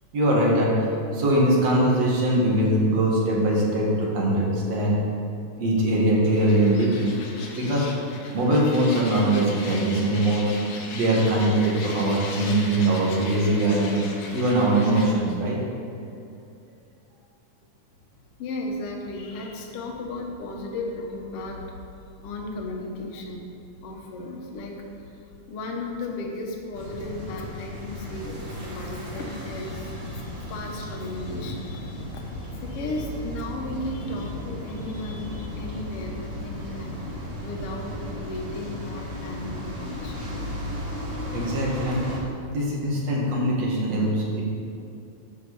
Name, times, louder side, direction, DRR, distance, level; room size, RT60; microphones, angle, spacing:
voice 1, 0.1-5.0 5.6-7.1 7.5-7.9 8.3-10.4 10.9-14.0 14.3-15.6 41.3-42.2 42.5-44.4, right 1 dB, 60° right, -3 dB, 3.0 m, -22 dB
sound 1, 6.3-15.1, left 3 dB, 85° left, 2.8 m, -38 dB
voice 2, 18.4-21.7 22.2-23.4 23.8-37.0 37.4-40.2, left 2 dB, 55° left, 1 dB, 2.1 m, -35 dB
sound 2, 26.7-42.2, left 1 dB, 40° right, 3.8 m, -35 dB
11.0 x 6.5 x 7.1 m, 2.5 s
omnidirectional pair, 3.5 m